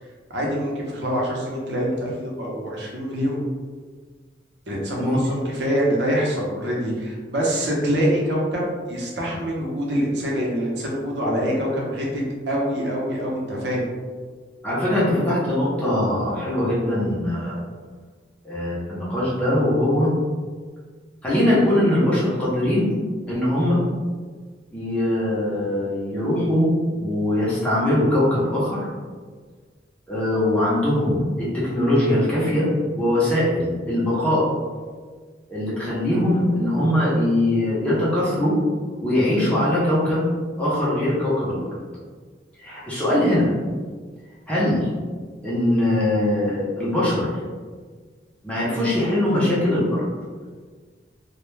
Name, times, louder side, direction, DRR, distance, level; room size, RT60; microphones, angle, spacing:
voice 1, 0.3-3.4 4.7-13.9, equal, 70° right, -3 dB, 0.7 m, -25 dB
voice 2, 14.6-17.6 18.4-20.1 21.2-22.9 23.3-23.8 24.7-26.7 27.0-28.8 30.1-32.7 32.9-34.5 35.5-38.6 39.0-40.3 40.6-41.7 42.6-43.5 44.5-44.9 45.4-47.3 48.4-50.0, left 1 dB, 5° left, -9 dB, 0.6 m, -21 dB
2.1 x 2.1 x 3.1 m, 1.5 s
head